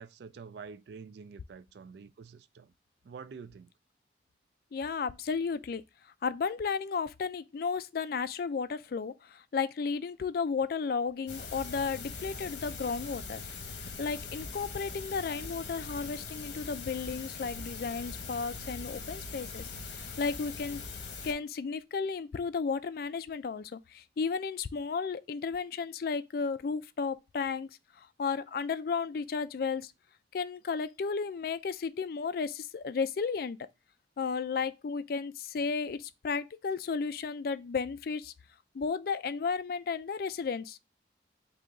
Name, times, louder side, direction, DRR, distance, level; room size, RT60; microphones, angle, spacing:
voice 1, 0.0-2.7 3.0-3.7, right 5 dB, 70° right, 0.3 m, -47 dB
voice 2, 4.7-5.8 6.2-13.4 14.0-20.8 21.2-27.7 28.0-29.9 30.3-33.6 34.2-38.3 38.7-40.8, left 5 dB, 55° left, 0.3 m, -33 dB
sound 1, 11.3-21.3, left 4 dB, 75° left, 1.0 m, -42 dB
3.8 x 2.8 x 4.5 m
head